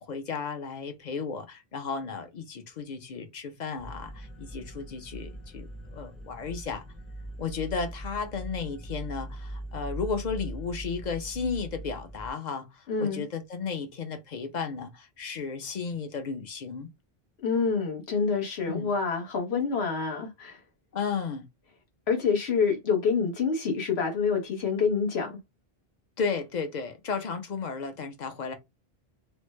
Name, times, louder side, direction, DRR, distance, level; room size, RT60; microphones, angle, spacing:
voice 1, 0.0-6.8 7.4-16.9 18.7-18.9 20.9-21.5 26.2-28.5, left 5 dB, 50° left, 0.7 m, -34 dB
sound 1, 3.8-12.3, right 1 dB, ahead, 0.5 m, -40 dB
voice 2, 12.9-13.2 17.4-20.6 22.1-25.3, left 5 dB, 80° left, 1.3 m, -27 dB
3.2 x 2.1 x 3.1 m
omnidirectional pair, 1.0 m